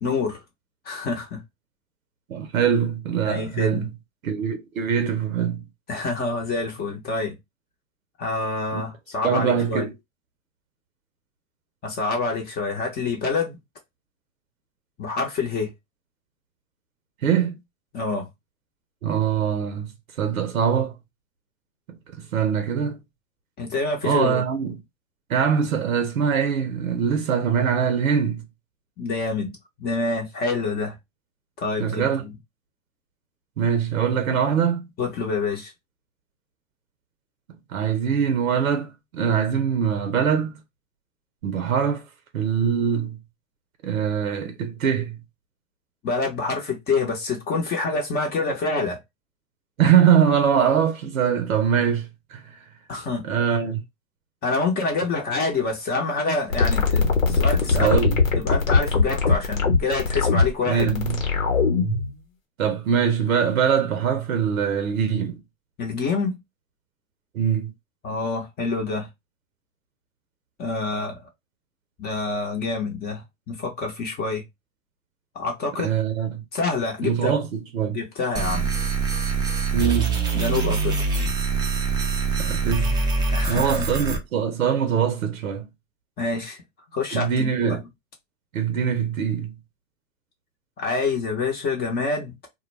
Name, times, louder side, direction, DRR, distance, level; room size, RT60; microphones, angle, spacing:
voice 1, 0.0-0.4 0.8-1.4 3.2-3.9 5.9-7.4 8.2-9.9 11.8-13.6 15.0-15.7 17.9-18.3 23.6-24.4 29.0-31.0 31.6-32.3 35.0-35.7 46.0-49.0 52.9-53.2 54.4-58.0 58.4-61.0 65.8-66.4 68.0-69.1 70.6-71.2 72.0-74.4 75.3-76.0 76.5-77.4 77.9-78.7 80.3-81.1 83.3-83.9 86.2-86.6 86.9-87.8 90.8-92.5, left 3 dB, 25° left, 0.7 m, -27 dB
voice 2, 2.3-3.9 4.2-5.6 8.7-8.8 9.2-9.9 17.2-17.6 19.0-19.9 20.2-20.9 21.9-23.0 24.0-24.8 25.3-28.5 31.8-32.2 33.6-34.9 37.7-40.5 41.4-42.1 42.3-43.2 43.8-45.2 49.8-52.6 53.2-53.8 57.7-58.2 60.6-61.2 62.6-65.4 67.3-67.7 75.8-76.4 77.0-78.0 79.7-80.3 82.4-83.0 83.5-85.7 87.1-87.8 88.5-89.5, right 7 dB, 85° right, 0.7 m, -23 dB
sound 1, 56.5-62.1, left 4 dB, 85° left, 1.0 m, -20 dB
sound 2, 78.3-84.2, right 4 dB, 10° right, 0.4 m, -24 dB
2.2 x 2.2 x 3.1 m
hypercardioid pair, 110°, 40 cm